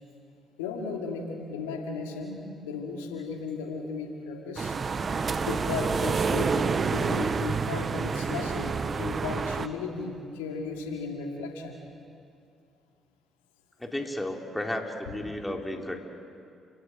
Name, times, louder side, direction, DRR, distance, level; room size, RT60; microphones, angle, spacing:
voice 1, 0.6-4.8 5.4-11.8, left 4 dB, 90° left, 1 dB, 2.7 m, -35 dB
sound 1, 4.6-9.7, right 5 dB, 45° right, 1.1 m, -28 dB
voice 2, 13.8-16.0, left 1 dB, 10° left, 2 dB, 3.6 m, -33 dB
30.0 x 18.5 x 7.6 m, 2.4 s
hypercardioid pair, 50°, 0 cm